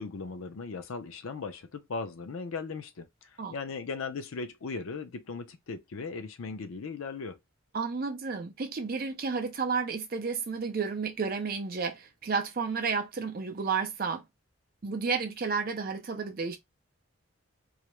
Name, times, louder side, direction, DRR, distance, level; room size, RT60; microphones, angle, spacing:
voice 1, 0.0-7.4, left 4 dB, 75° left, 0.5 m, -38 dB
voice 2, 7.7-14.2 14.8-16.6, right 5 dB, 45° right, 0.4 m, -31 dB
2.3 x 2.0 x 2.9 m
head